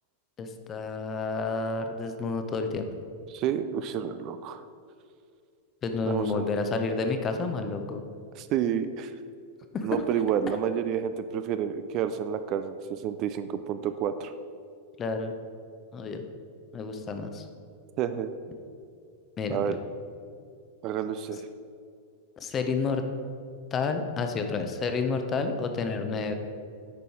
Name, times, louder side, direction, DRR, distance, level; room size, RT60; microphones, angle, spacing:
voice 1, 0.4-2.9 5.8-8.0 9.7-9.9 15.0-15.3 15.9-16.2 16.7-17.5 19.4-19.8 22.4-23.0 23.7-26.3, left 4 dB, 25° left, 6 dB, 0.7 m, -30 dB
voice 2, 3.3-4.6 6.0-6.5 8.4-9.1 9.8-14.3 18.0-18.3 19.5-19.8 20.8-21.5, right 9 dB, 40° right, 10 dB, 0.3 m, -29 dB
8.4 x 5.3 x 4.4 m, 2.4 s
figure-of-eight pair, 90°, 0 cm